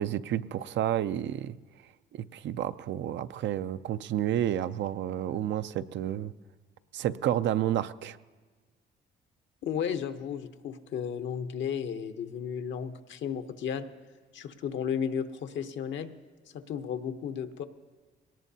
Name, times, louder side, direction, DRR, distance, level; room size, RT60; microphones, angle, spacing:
voice 1, 0.0-1.6 2.1-6.3 6.9-8.2, right 11 dB, 65° right, 13 dB, 0.5 m, -30 dB
voice 2, 9.6-13.9 14.3-16.1 16.5-17.6, left 8 dB, 70° left, 8 dB, 0.8 m, -34 dB
21.5 x 18.0 x 2.8 m, 1.4 s
cardioid pair, 90°, 20 cm